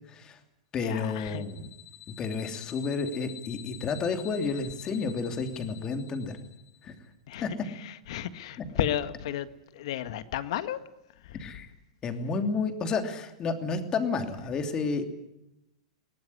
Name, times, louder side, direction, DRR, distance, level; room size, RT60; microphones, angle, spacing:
voice 1, 0.1-0.4 0.7-1.7 2.2-6.4 6.8-6.9 7.4-7.5 11.4-11.7 12.0-15.0, left 4 dB, 25° left, 2.9 m, -31 dB
voice 2, 0.8-1.4 7.3-10.8 11.2-11.4, left 11 dB, 65° left, 1.7 m, -33 dB
sound 1, 1.0-6.9, left 13 dB, 50° left, 5.0 m, -48 dB
21.5 x 18.5 x 9.8 m
supercardioid pair, 150°, 3 cm